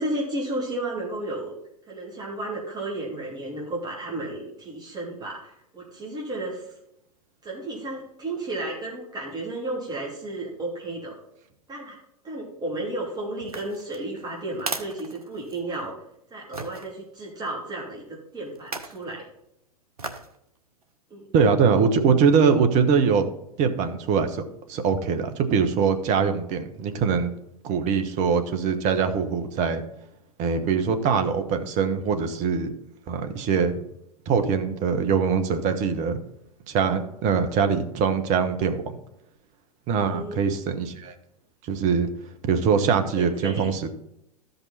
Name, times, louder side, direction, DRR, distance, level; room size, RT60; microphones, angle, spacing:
voice 1, 0.0-1.5 1.9-6.6 7.4-11.2 11.7-12.0 12.2-16.0 16.3-19.3 21.1-21.3 39.9-40.4 43.1-43.7, right 2 dB, 20° right, -3 dB, 3.2 m, -33 dB
sound 1, 13.4-15.9 16.5-16.9 18.6-19.0 20.0-20.4 20.8-20.9, right 3 dB, 80° right, 1.1 m, -36 dB
voice 2, 21.3-23.3 23.6-24.4 24.7-27.3 27.6-29.8 30.4-32.7 33.1-33.8 34.3-36.2 36.7-38.8 39.9-41.1 41.6-42.1 42.5-43.9, right 6 dB, 40° right, 8 dB, 1.3 m, -22 dB
14.0 x 5.5 x 4.2 m, 0.79 s
figure-of-eight pair, 90°, 19 cm